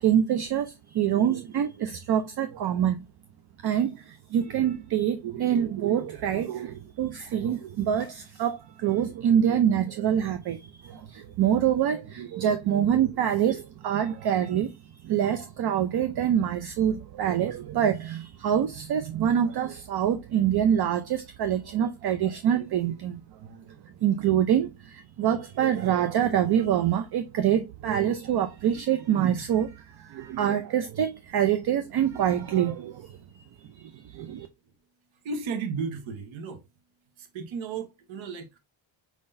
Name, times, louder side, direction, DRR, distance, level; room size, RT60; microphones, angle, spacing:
voice 1, 0.0-3.1 3.6-14.7 15.0-23.6 24.0-33.4 33.7-34.5, right 9 dB, 55° right, 0.6 m, -26 dB
voice 2, 35.2-36.6 37.2-38.6, right 5 dB, 75° right, 1.0 m, -34 dB
4.8 x 3.8 x 2.5 m
cardioid pair, 130°, 47 cm